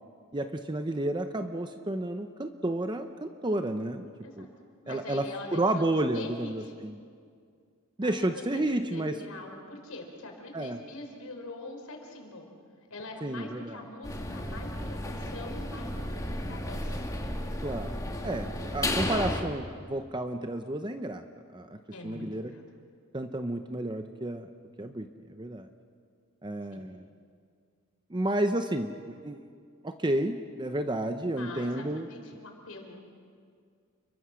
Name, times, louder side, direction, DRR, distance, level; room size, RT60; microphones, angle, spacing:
voice 1, 0.3-4.1 4.4-4.5 4.9-7.0 8.0-9.2 10.5-10.8 13.2-13.8 17.6-18.0 18.2-21.2 21.5-21.8 22.0-22.5 23.1-24.5 24.8-25.7 26.4-27.1 28.1-29.5 29.8-32.1, right 1 dB, 20° right, 7 dB, 0.8 m, -31 dB
voice 2, 4.8-5.8 6.1-6.7 8.0-12.5 12.9-17.0 21.9-22.6 26.7-26.8 31.2-33.0, left 2 dB, 80° left, 3 dB, 4.6 m, -43 dB
sound 1, 14.0-19.4, left 1 dB, 15° left, 2.0 m, -33 dB
30.0 x 23.0 x 6.3 m, 2.2 s
head